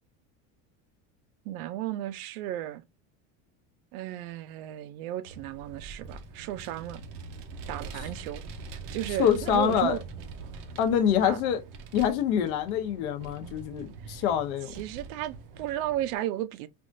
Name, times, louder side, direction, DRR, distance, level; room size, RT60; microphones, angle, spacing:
voice 1, 1.4-2.8 3.9-7.0 7.7-8.4 8.7-10.0 11.2-11.4 14.7-16.7, right 13 dB, 85° right, 0.6 m, -34 dB
Vehicle, 5.3-16.2, right 4 dB, 40° right, 0.4 m, -43 dB
voice 2, 9.2-10.0 10.8-11.6 11.9-14.8, left 9 dB, 80° left, 0.8 m, -25 dB
3.5 x 2.3 x 2.5 m
cardioid pair, 170°, 41 cm